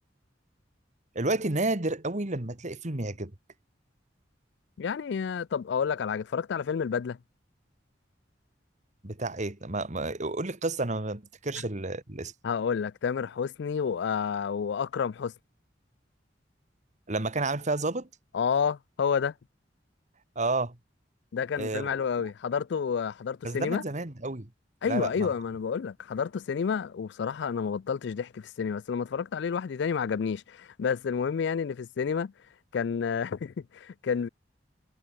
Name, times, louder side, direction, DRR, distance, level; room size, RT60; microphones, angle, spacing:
voice 1, 1.2-3.3 9.0-12.3 17.1-18.1 20.4-20.8 21.6-22.0 23.4-24.5 24.9-25.3, right 2 dB, 40° right, 2.0 m, -31 dB
voice 2, 4.8-7.2 12.4-15.3 18.3-19.3 21.3-23.8 24.8-32.3 32.7-34.3, left 6 dB, 65° left, 0.4 m, -30 dB
head